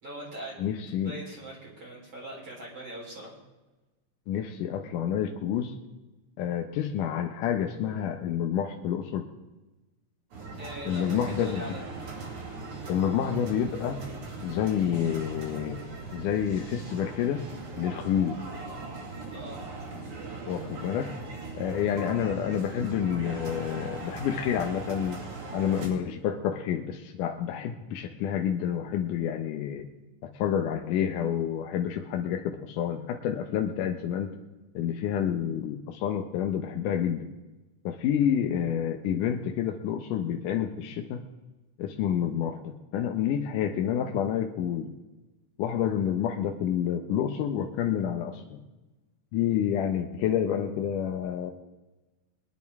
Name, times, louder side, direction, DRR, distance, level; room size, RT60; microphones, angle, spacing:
voice 1, 0.0-0.6 1.0-3.3 10.6-11.9 19.3-19.6 21.8-22.1, right 1 dB, 45° right, -5 dB, 4.7 m, -41 dB
voice 2, 0.6-1.1 4.3-5.7 6.4-9.2 10.9-11.6 12.9-14.0 14.4-15.8 16.1-17.4 17.8-18.4 20.5-21.1 21.6-25.2 25.5-29.8 30.2-34.3 34.7-37.3 37.9-41.2 41.8-44.9 45.6-48.6 49.3-51.5, left 9 dB, 80° left, 4 dB, 2.4 m, -29 dB
sound 1, 10.3-25.9, right 3 dB, 70° right, 3.9 m, -40 dB
22.0 x 11.0 x 3.5 m, 1.1 s
omnidirectional pair, 3.6 m